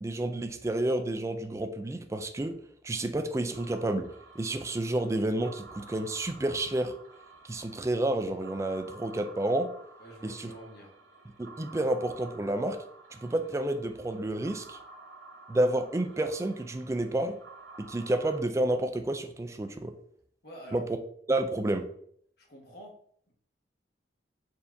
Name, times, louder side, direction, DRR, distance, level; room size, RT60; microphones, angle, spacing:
voice 1, 0.0-2.6 2.8-4.1 4.4-6.9 7.4-9.7 10.2-10.5 11.4-12.8 13.1-14.8 15.5-17.3 17.8-19.9 20.7-20.8 21.3-21.8, right 1 dB, 15° right, 7 dB, 0.3 m, -30 dB
sound 1, 3.5-18.4, right 3 dB, 65° right, 0.9 m, -52 dB
voice 2, 10.0-10.9 20.4-20.8 22.4-22.9 23.3-23.4, right 1 dB, 60° left, -1 dB, 1.3 m, -47 dB
4.4 x 3.4 x 2.6 m, 0.64 s
head